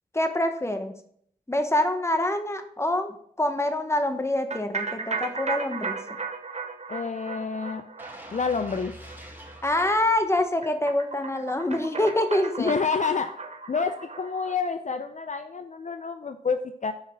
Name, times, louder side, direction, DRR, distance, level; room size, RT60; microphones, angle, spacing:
voice 1, 0.1-0.9 1.5-6.0 9.6-12.8, left 1 dB, 15° left, 7 dB, 1.0 m, -25 dB
sound 1, 4.5-14.6, right 4 dB, 45° right, 0.9 m, -36 dB
voice 2, 6.9-7.8 8.3-9.0 12.6-13.4 13.7-16.9, left 5 dB, 55° left, 9 dB, 0.4 m, -28 dB
sound 2, 8.0-10.9 11.3-11.5, equal, 15° right, 2.6 m, -46 dB
6.4 x 5.1 x 5.1 m, 0.65 s
cardioid pair, 45°, 15 cm